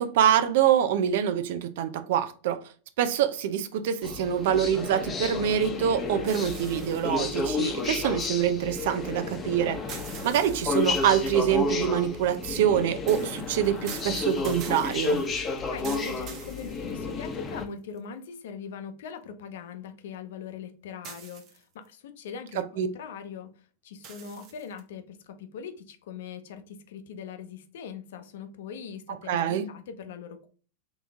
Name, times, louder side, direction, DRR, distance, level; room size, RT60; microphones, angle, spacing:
voice 1, 0.0-2.6 3.0-9.8 10.2-15.2 22.5-22.9 29.3-29.7, right 9 dB, 65° right, 0.6 m, -25 dB
sound 1, 4.0-17.7, left 4 dB, 20° left, 0.9 m, -32 dB
sound 2, 6.2-8.4 9.9-11.5 13.1-17.3 18.0-18.1 21.0-21.9 24.0-24.8, right 6 dB, 40° right, 0.9 m, -45 dB
voice 2, 15.7-23.5 23.8-30.5, left 6 dB, 75° left, 0.8 m, -41 dB
3.9 x 3.1 x 3.5 m
hypercardioid pair, 125°, 0 cm